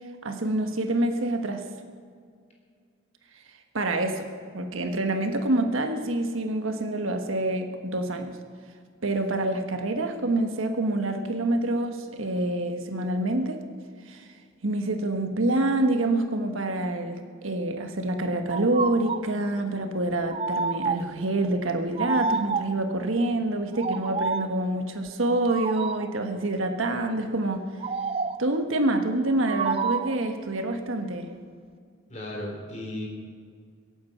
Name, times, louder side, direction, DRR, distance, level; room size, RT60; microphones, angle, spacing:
voice 1, 0.2-1.6 3.7-4.2 4.5-8.3 9.0-13.6 14.1-14.3 14.6-27.6 28.4-31.3, right 2 dB, 75° right, 5 dB, 1.4 m, -27 dB
sound 1, 18.5-19.3 20.3-21.2 22.0-22.9 23.7-24.6 25.5-26.2 27.8-28.5 29.5-30.3, right 4 dB, 25° right, 0.3 m, -29 dB
voice 2, 32.1-33.1, left 1 dB, 35° left, -1 dB, 3.5 m, -35 dB
23.0 x 8.7 x 5.8 m, 2.2 s
head